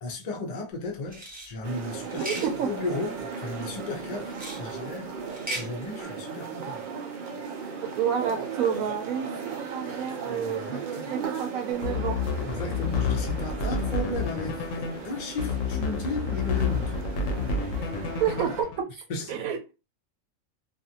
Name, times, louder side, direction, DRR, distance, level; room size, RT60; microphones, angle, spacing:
voice 1, 0.0-5.1 5.5-6.8 10.2-11.1 12.4-17.0 18.5-18.6 19.1-19.3, left 2 dB, 45° left, 0.6 m, -35 dB
sound 1, 1.1-1.5 2.1-2.5 4.3-4.6 5.3-5.7, right 1 dB, 10° right, 0.6 m, -36 dB
sound 2, 1.6-18.6, right 5 dB, 55° right, 0.5 m, -37 dB
voice 2, 2.2-2.7 8.0-9.3 9.6-10.8 11.1-12.2 18.2-18.9 19.3-19.7, right 8 dB, 85° right, 1.1 m, -29 dB
sound 3, 11.7-18.8, left 4 dB, 80° left, 1.0 m, -29 dB
2.5 x 2.5 x 2.7 m
omnidirectional pair, 1.4 m